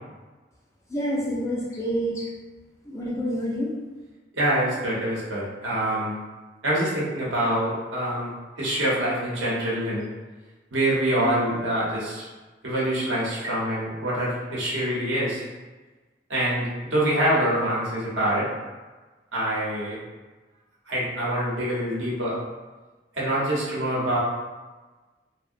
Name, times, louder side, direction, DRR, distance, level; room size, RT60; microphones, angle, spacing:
voice 1, 0.9-2.3 2.9-3.7, equal, 15° left, -4 dB, 0.4 m, -27 dB
voice 2, 4.3-6.1 6.6-10.1 10.7-12.3 12.6-15.4 16.3-18.5 19.3-20.0 20.9-22.4 23.1-24.2, right 1 dB, 90° right, -6 dB, 0.8 m, -25 dB
2.7 x 2.1 x 2.5 m, 1.3 s
head